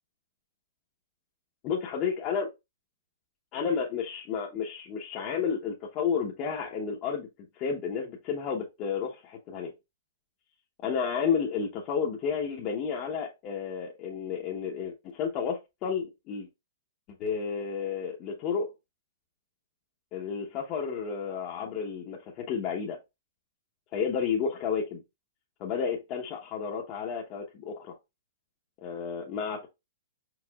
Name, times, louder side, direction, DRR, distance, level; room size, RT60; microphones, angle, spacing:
voice 1, 1.6-2.5 3.5-7.3 7.5-9.7 10.8-16.5 17.2-18.7 20.1-23.0 23.9-25.0 25.6-28.0 28.8-29.7, left 6 dB, 35° left, 0.9 m, -31 dB
4.8 x 4.8 x 2.3 m
hypercardioid pair, 150°, 0 cm